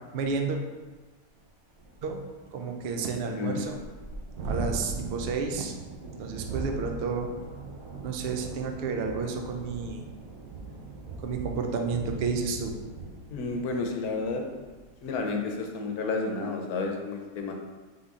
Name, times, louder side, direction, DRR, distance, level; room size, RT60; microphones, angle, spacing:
voice 1, 0.1-0.6 2.0-2.2 2.5-3.8 4.4-5.7 6.2-7.3 8.0-10.0 11.2-12.7, right 5 dB, 85° right, 4 dB, 0.5 m, -31 dB
Thunderstorm, 0.9-1.0 1.4-1.5 1.8-15.4, right 3 dB, 65° right, 1.1 m, -40 dB
voice 2, 3.3-3.7 13.3-14.4 15.0-17.5, left 3 dB, 80° left, 3 dB, 1.1 m, -31 dB
4.0 x 3.6 x 3.5 m, 1.3 s
omnidirectional pair, 1.6 m